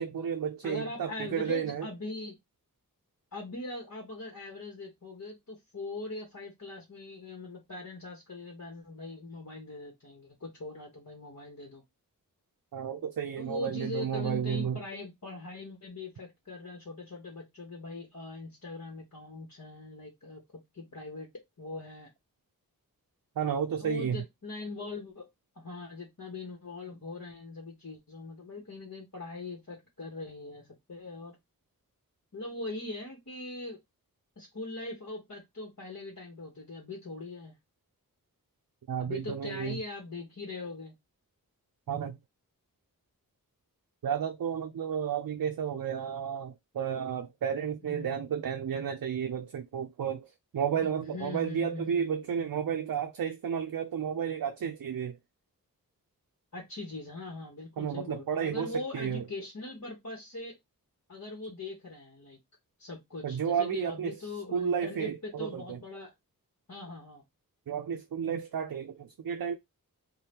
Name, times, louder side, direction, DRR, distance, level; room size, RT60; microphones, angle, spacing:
voice 1, 0.0-1.9 12.7-14.8 23.4-24.2 38.9-39.8 41.9-42.2 44.0-55.2 57.8-59.2 63.2-64.1 64.5-65.8 67.7-69.5, right 8 dB, 70° right, 0.5 m, -32 dB
voice 2, 0.6-2.4 3.3-11.8 13.4-21.3 21.6-22.1 23.8-25.3 25.6-31.4 32.3-33.8 34.4-37.5 39.0-40.9 47.8-48.1 51.0-52.1 56.5-60.6 61.1-62.4 62.8-66.1 66.7-67.2, left 3 dB, 50° left, 1.1 m, -41 dB
2.8 x 2.2 x 3.4 m
wide cardioid pair, 40°, 35 cm